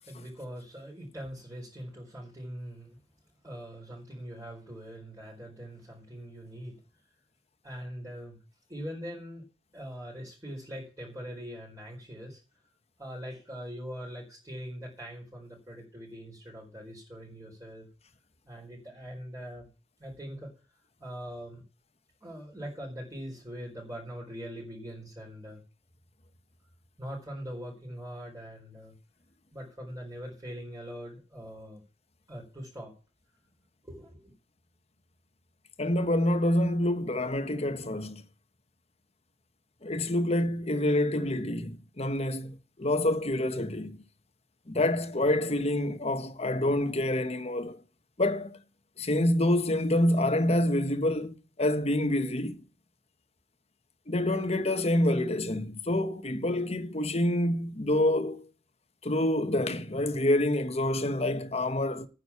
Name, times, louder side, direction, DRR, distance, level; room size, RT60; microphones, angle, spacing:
voice 1, 0.0-3.0 3.4-6.8 7.6-8.4 8.7-9.4 9.7-12.4 13.0-17.9 18.5-19.7 20.0-20.5 21.0-21.6 22.2-25.6 27.0-28.9 29.5-31.8 32.3-32.9 33.8-34.3, equal, 20° right, 4.3 m, -42 dB
voice 2, 35.8-38.2 39.8-44.0 44.7-47.8 48.2-48.6 49.0-52.6 54.1-58.4 59.0-62.1, left 1 dB, 35° left, 1.3 m, -27 dB
9.6 x 6.3 x 8.4 m
head